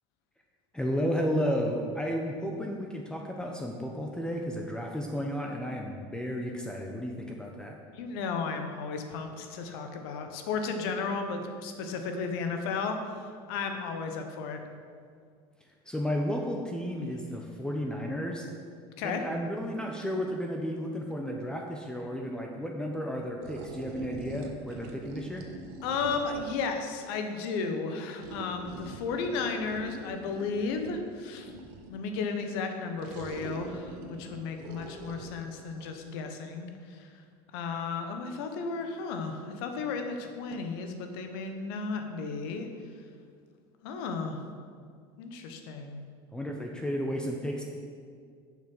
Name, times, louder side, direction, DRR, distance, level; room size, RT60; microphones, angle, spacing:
voice 1, 0.7-7.8 15.9-18.5 19.0-25.5 46.3-47.6, equal, 5° left, 0 dB, 0.8 m, -33 dB
voice 2, 7.9-14.6 19.0-19.2 25.8-31.5 31.9-37.1 37.5-42.7 43.8-44.4 45.2-46.0, left 4 dB, 75° left, 5 dB, 1.1 m, -34 dB
sound 1, 23.4-26.8 28.2-32.0 33.0-35.9, right 3 dB, 70° right, 1.1 m, -43 dB
7.0 x 6.3 x 6.1 m, 2.2 s
supercardioid pair, 120°, 13 cm